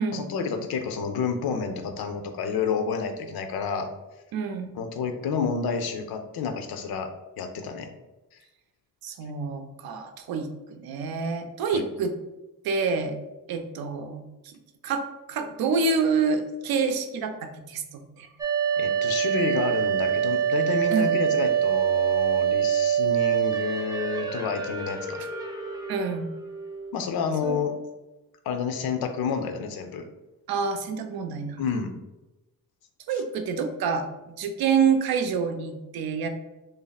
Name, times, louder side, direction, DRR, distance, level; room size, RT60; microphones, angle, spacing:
voice 1, 0.1-3.9 4.7-7.1 7.4-7.9 11.7-11.8 18.8-25.2 26.9-27.8 28.4-30.1 31.6-31.9, left 5 dB, 80° left, 7 dB, 0.6 m, -29 dB
voice 2, 4.3-4.7 9.0-12.1 12.6-13.2 13.5-14.6 14.8-17.8 18.2-18.3 20.9-21.2 25.9-26.3 27.4-27.6 30.5-31.6 33.1-34.1 34.4-36.3, right 5 dB, 85° right, 7 dB, 0.6 m, -27 dB
sound 1, 18.4-26.9, right 8 dB, 10° right, 0.4 m, -25 dB
3.1 x 2.7 x 4.0 m, 1.0 s
wide cardioid pair, 170°, 36 cm